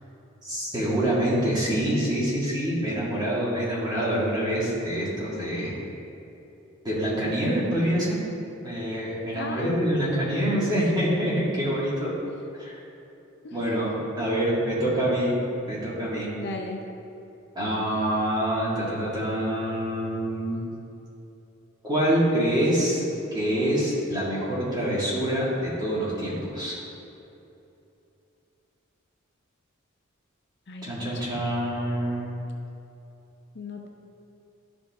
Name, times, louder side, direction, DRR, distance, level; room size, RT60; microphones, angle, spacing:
voice 1, 0.4-5.8 6.8-8.2 8.6-12.1 12.6-12.7 13.5-15.4 15.7-16.3 17.6-20.6 21.8-23.0 23.3-26.8 30.8-32.3, right 1 dB, 20° right, -7 dB, 1.8 m, -26 dB
voice 2, 9.3-9.8 13.4-13.8 16.3-16.8 30.7-31.2 33.5-33.9, left 3 dB, 55° left, 3 dB, 0.6 m, -37 dB
11.0 x 5.1 x 3.5 m, 2.8 s
head